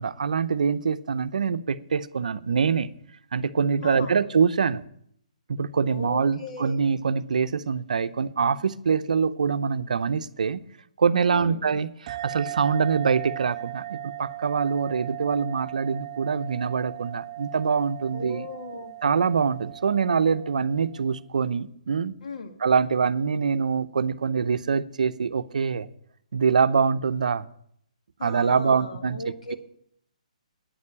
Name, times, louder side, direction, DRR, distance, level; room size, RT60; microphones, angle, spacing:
voice 1, 0.0-2.9 3.3-4.9 5.5-10.6 11.0-18.5 19.0-22.2 22.6-25.9 26.3-27.5 28.2-29.2, right 6 dB, 75° right, 13 dB, 0.6 m, -24 dB
voice 2, 3.8-4.2 5.9-6.9 11.3-11.6 18.1-18.9 22.2-22.6 28.2-29.6, left 3 dB, 65° left, 5 dB, 1.8 m, -37 dB
sound 1, 12.1-21.1, right 17 dB, 35° right, 0.4 m, -38 dB
9.2 x 6.7 x 8.5 m, 0.69 s
hypercardioid pair, 155°, 4 cm